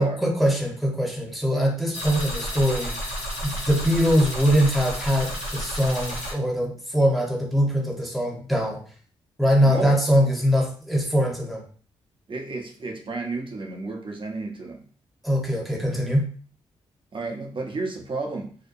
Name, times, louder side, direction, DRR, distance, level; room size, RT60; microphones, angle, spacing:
voice 1, 0.0-3.1 3.4-8.8 9.4-11.6 15.2-16.3, equal, ahead, 0 dB, 1.0 m, -22 dB
sound 1, 1.9-6.3, equal, 70° left, 1.1 m, -31 dB
voice 2, 9.6-10.0 12.3-14.9 17.1-18.6, right 3 dB, 45° right, 2 dB, 0.8 m, -31 dB
2.8 x 2.1 x 2.6 m, 0.42 s
hypercardioid pair, 40°, 12 cm